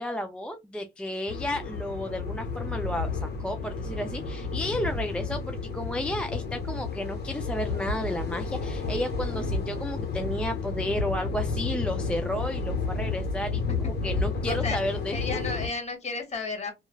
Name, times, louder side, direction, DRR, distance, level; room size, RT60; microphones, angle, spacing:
voice 1, 0.0-15.4, left 1 dB, 5° left, 0.3 m, -32 dB
sound 1, 1.3-15.7, left 4 dB, 55° left, 1.0 m, -31 dB
voice 2, 14.5-14.8 15.1-16.7, left 4 dB, 35° left, 1.5 m, -32 dB
3.0 x 2.2 x 2.2 m
cardioid pair, 90°, 20 cm